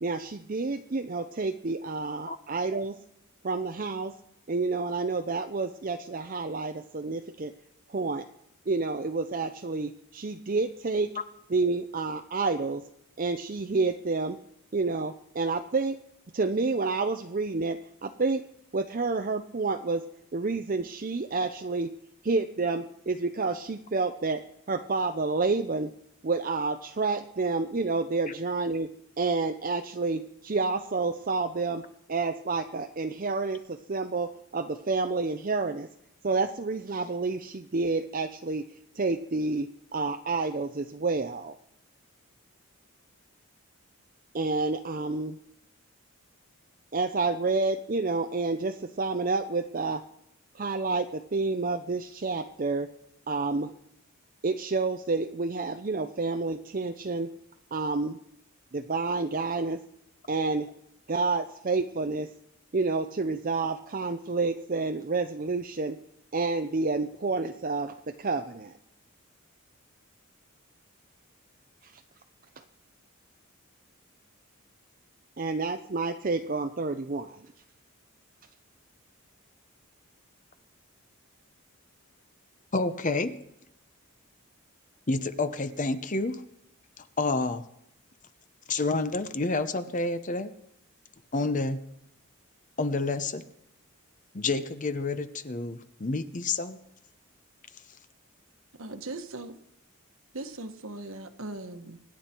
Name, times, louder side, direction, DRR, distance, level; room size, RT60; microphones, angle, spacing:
voice 1, 0.0-3.0 3.4-4.1 4.5-7.5 7.9-8.3 8.7-11.1 11.5-12.8 13.2-14.4 14.7-16.0 16.3-18.4 18.7-20.0 20.3-21.9 22.2-24.4 24.7-25.9 26.2-28.9 29.2-31.8 32.1-35.9 36.2-38.6 38.9-41.6 44.3-45.4 46.9-50.0 50.5-52.9 53.3-53.7 54.4-57.3 57.7-58.2 58.7-59.8 60.3-60.7 61.1-62.3 62.7-66.0 66.3-68.7 71.8-71.9 75.4-77.4, right 3 dB, 40° right, 6 dB, 0.6 m, -29 dB
voice 2, 82.7-83.3 85.1-86.4 87.0-87.6 88.7-90.5 91.3-91.8 92.8-93.4 94.3-96.8, left 3 dB, 35° left, 11 dB, 0.8 m, -29 dB
voice 3, 98.8-99.5 100.3-102.0, right 2 dB, 65° right, 8 dB, 1.3 m, -39 dB
25.0 x 10.5 x 4.5 m, 0.80 s
head